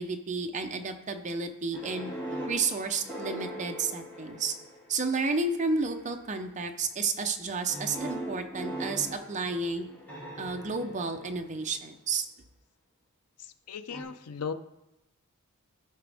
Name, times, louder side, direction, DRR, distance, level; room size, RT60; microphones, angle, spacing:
voice 1, 0.0-2.1 2.5-4.5 4.9-9.9 10.4-12.2, right 4 dB, 35° right, 5 dB, 0.7 m, -31 dB
sound 1, 1.7-5.1 5.8-6.3 7.7-11.8 13.9-14.0, right 1 dB, 10° left, 2.8 m, -40 dB
voice 2, 13.7-14.5, left 6 dB, 90° left, 10 dB, 0.6 m, -36 dB
14.0 x 5.9 x 3.5 m, 0.92 s
head